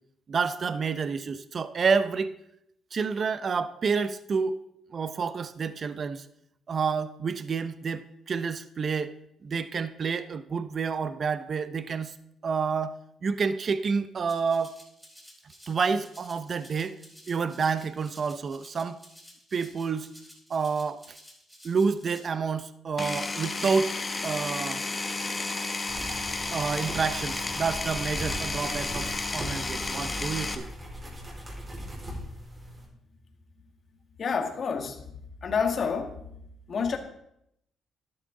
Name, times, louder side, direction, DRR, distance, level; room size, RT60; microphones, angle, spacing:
voice 1, 0.3-2.3 2.9-4.6 4.9-6.3 6.7-9.1 9.4-12.1 12.4-14.7 15.7-17.0 17.3-19.0 19.5-20.1 20.5-21.2 21.6-24.8 26.5-30.7, right 5 dB, 45° right, 12 dB, 0.6 m, -29 dB
Rattle (instrument), 14.3-22.3, equal, 5° right, 4.3 m, -53 dB
Power tool, 23.0-30.6, left 3 dB, 25° left, 1.1 m, -32 dB
sound 1, 25.9-32.9, equal, 25° right, 4.5 m, -39 dB
voice 2, 34.2-35.1 35.4-36.4 36.7-37.0, left 6 dB, 50° left, 5 dB, 1.6 m, -29 dB
12.0 x 10.5 x 3.8 m, 0.76 s
cardioid pair, 90°, 0 cm